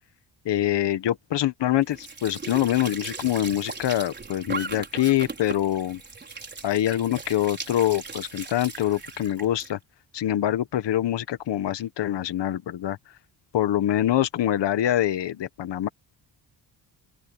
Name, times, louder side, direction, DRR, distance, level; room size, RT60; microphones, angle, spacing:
voice 1, 0.4-6.0 6.6-9.8 10.1-13.0 13.5-15.9, left 12 dB, 65° left, 1.5 m, -25 dB
Squeak / Sink (filling or washing) / Trickle dribble, 1.8-9.7, right 4 dB, 25° right, 4.8 m, -38 dB
open air
wide cardioid pair, 170°, 45 cm